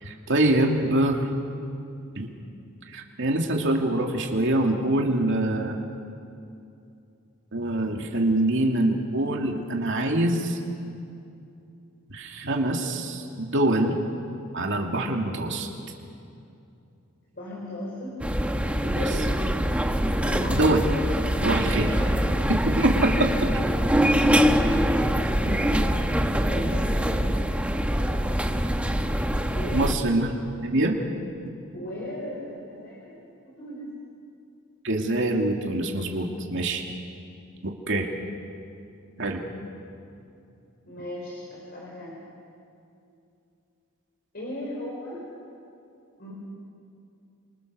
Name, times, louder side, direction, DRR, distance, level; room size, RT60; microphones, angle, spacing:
voice 1, 0.0-1.3 2.1-2.3 2.9-5.8 7.5-10.6 12.1-14.0 14.5-15.7 19.0-19.1 20.5-20.8 21.4-21.9 22.5-23.3 25.4-25.6 29.7-30.9 34.8-36.8 37.6-38.1 39.2-39.4, right 1 dB, 60° right, 1 dB, 2.6 m, -24 dB
voice 2, 17.3-18.2 18.8-19.5 20.2-20.6 21.3-22.1 25.4-27.5 27.9-28.4 29.5-29.9 31.7-33.2 33.4-33.9 40.9-42.2 44.3-45.2 46.2-46.3, left 1 dB, 50° left, -5 dB, 5.7 m, -37 dB
sound 1, 18.2-29.9, equal, 5° right, 1.1 m, -24 dB
29.5 x 27.0 x 6.8 m, 2.6 s
head